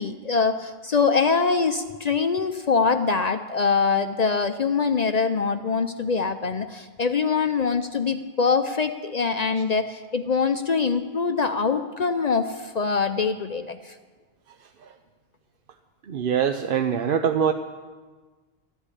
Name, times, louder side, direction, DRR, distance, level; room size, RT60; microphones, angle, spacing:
voice 1, 0.0-13.9, left 5 dB, 50° left, 8 dB, 0.6 m, -24 dB
voice 2, 16.1-17.5, right 7 dB, 65° right, 7 dB, 0.8 m, -23 dB
13.5 x 8.3 x 9.9 m, 1.4 s
omnidirectional pair, 1.0 m